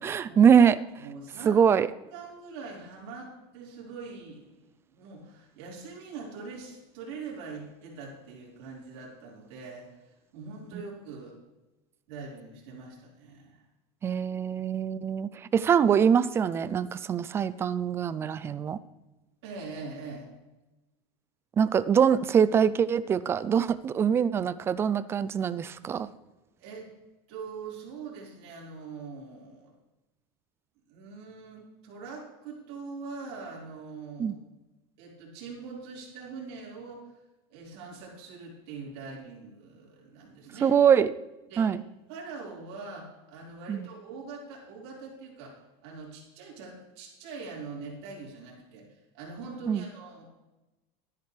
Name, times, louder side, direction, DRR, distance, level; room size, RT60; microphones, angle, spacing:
voice 1, 0.0-0.8 1.5-1.9 10.7-10.8 14.0-18.8 21.6-26.1 34.2-34.3 40.6-41.1 41.6-41.8 43.7-43.9 49.7-49.8, right 7 dB, 15° right, 16 dB, 0.3 m, -23 dB
voice 2, 1.0-1.6 2.1-11.4 12.1-13.6 19.4-20.3 26.6-26.9 27.3-29.7 30.9-34.4 35.0-37.1 37.5-40.7 41.5-41.7 42.1-50.3, right 4 dB, 65° right, -3 dB, 4.6 m, -43 dB
13.0 x 10.5 x 3.3 m, 1.1 s
supercardioid pair, 155°, 14 cm